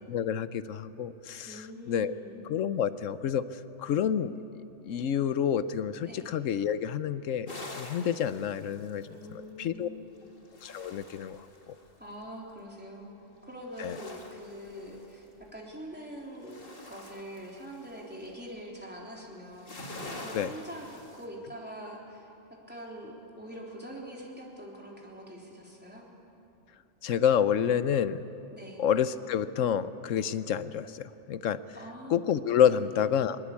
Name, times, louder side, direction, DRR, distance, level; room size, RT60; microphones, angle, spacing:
voice 1, 0.1-2.1 2.5-3.4 3.8-4.3 4.8-9.9 10.6-11.4 13.8-14.0 20.3-20.5 27.0-28.2 28.8-31.6 32.1-33.4, left 8 dB, 90° left, 14 dB, 1.1 m, -28 dB
voice 2, 1.4-2.4 6.0-6.3 9.1-10.3 12.0-13.2 13.4-16.6 16.9-19.7 20.2-26.1 28.5-28.8 31.8-32.3 32.7-32.8, equal, 10° right, -3 dB, 3.5 m, -44 dB
sound 1, 7.5-9.4 10.2-11.9 13.6-15.5 15.9-18.3 19.5-21.2, left 2 dB, 45° left, 2.1 m, -46 dB
21.5 x 20.5 x 8.4 m, 2.9 s
omnidirectional pair, 1.3 m